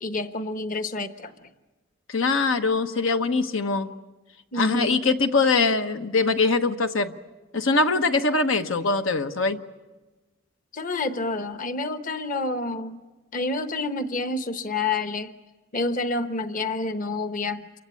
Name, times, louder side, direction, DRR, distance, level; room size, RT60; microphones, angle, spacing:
voice 1, 0.0-1.5 4.5-5.1 10.7-13.0 13.3-15.3 15.7-17.6, left 2 dB, 40° left, 9 dB, 1.0 m, -28 dB
voice 2, 2.1-3.9 4.5-7.1 7.5-9.6, left 3 dB, 85° left, 8 dB, 1.2 m, -22 dB
29.0 x 24.5 x 8.5 m, 1.2 s
head